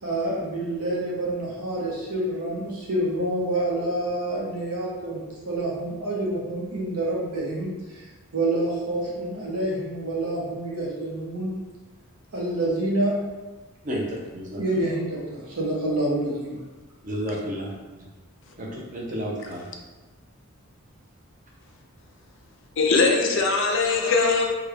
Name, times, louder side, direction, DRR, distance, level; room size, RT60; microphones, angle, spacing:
voice 1, 0.0-8.0 8.3-11.5 12.3-13.1 14.6-16.6, right 1 dB, 85° right, -4 dB, 0.9 m, -27 dB
voice 2, 13.8-14.6 17.0-17.7 18.6-19.6, equal, 35° right, -2 dB, 0.6 m, -31 dB
voice 3, 22.8-24.4, left 4 dB, 55° left, 1 dB, 0.4 m, -21 dB
3.3 x 2.3 x 3.3 m, 1.2 s
head